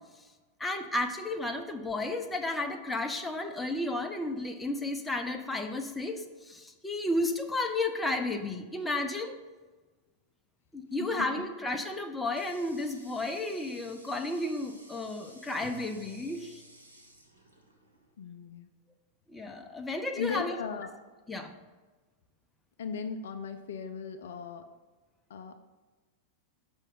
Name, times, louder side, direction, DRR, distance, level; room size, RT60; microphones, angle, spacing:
voice 1, 0.6-9.4 10.7-16.6 19.3-20.6 21.3-21.5, left 2 dB, 10° left, 5 dB, 0.5 m, -33 dB
Water tap faucet, 12.1-18.2, right 1 dB, 85° right, 0.7 m, -56 dB
Bowed string instrument, 15.6-18.6, right 6 dB, 25° right, 0.9 m, -56 dB
voice 2, 18.2-18.7 20.2-20.9 22.8-24.6 25.3-25.6, left 6 dB, 60° left, 8 dB, 0.4 m, -37 dB
5.5 x 3.5 x 5.4 m, 1.3 s
figure-of-eight pair, 90°, 0 cm